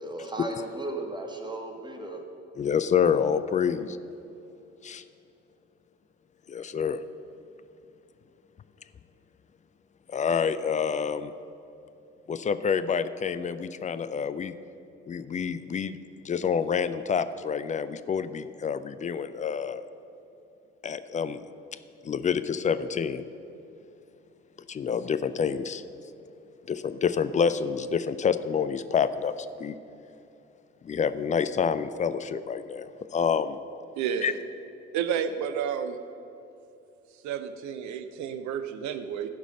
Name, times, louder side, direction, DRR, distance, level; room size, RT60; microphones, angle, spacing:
voice 1, 0.0-2.2, right 2 dB, 10° right, 3 dB, 1.6 m, -35 dB
voice 2, 2.6-4.0 4.8-5.0 6.5-7.0 10.1-11.3 12.3-14.5 15.1-16.0 16.2-19.9 20.8-21.4 22.0-23.2 24.7-25.8 26.7-29.7 30.8-33.6 34.2-34.3, left 6 dB, 20° left, 12 dB, 0.4 m, -28 dB
voice 3, 34.0-34.4 34.9-36.0 37.2-39.3, right 8 dB, 50° right, 11 dB, 0.8 m, -31 dB
14.5 x 5.1 x 6.5 m, 2.8 s
figure-of-eight pair, 55°, 36 cm